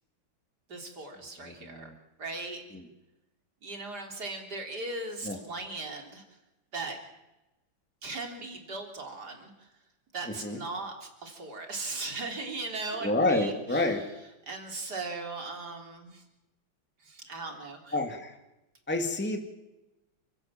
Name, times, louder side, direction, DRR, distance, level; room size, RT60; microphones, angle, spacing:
voice 1, 0.7-2.8 3.6-6.2 6.7-7.0 8.0-9.7 10.1-14.1 14.5-16.2 17.0-18.0, right 3 dB, 60° right, 3 dB, 4.2 m, -38 dB
voice 2, 1.4-1.9 5.2-5.4 10.4-10.6 13.0-14.0 17.9-18.4 18.9-19.4, left 2 dB, 5° left, 4 dB, 2.3 m, -28 dB
29.5 x 16.0 x 7.6 m, 0.98 s
omnidirectional pair, 2.0 m